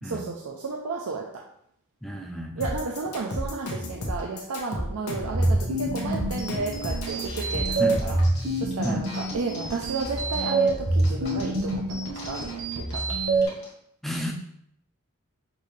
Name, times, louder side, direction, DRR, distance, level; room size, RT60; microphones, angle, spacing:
voice 1, 0.0-1.2 2.6-8.2 8.6-13.0, right 3 dB, 80° right, -1 dB, 0.5 m, -33 dB
voice 2, 2.0-2.7 7.8-8.1 8.8-9.1 14.0-14.3, equal, ahead, 1 dB, 0.4 m, -31 dB
sound 1, 2.6-8.2, left 1 dB, 90° left, 1.0 m, -32 dB
sound 2, 5.2-13.4, right 2 dB, 50° right, 0.9 m, -26 dB
sound 3, 7.0-13.7, left 2 dB, 50° left, 1.5 m, -43 dB
6.0 x 2.7 x 3.2 m, 0.73 s
head